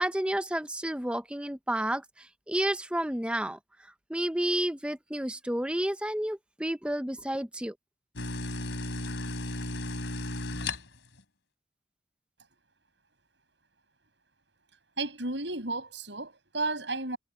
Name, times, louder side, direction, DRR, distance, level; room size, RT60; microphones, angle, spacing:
voice 1, 0.0-3.6 4.1-7.7, right 1 dB, 5° right, 0.7 m, -31 dB
sound 1, 8.1-11.2, left 2 dB, 90° left, 3.5 m, -34 dB
voice 2, 15.0-17.2, right 2 dB, 75° right, 7.5 m, -33 dB
head